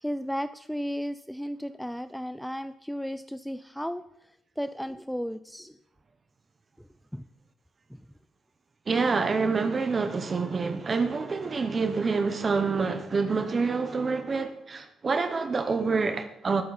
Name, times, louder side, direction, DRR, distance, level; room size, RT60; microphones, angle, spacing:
voice 1, 0.0-4.0 4.6-5.7 7.1-7.2 7.9-8.0, equal, ahead, 0.5 m, -34 dB
voice 2, 8.9-16.6, right 4 dB, 35° right, 1.1 m, -27 dB
20.0 x 8.5 x 4.3 m
cardioid pair, 90°, 0 cm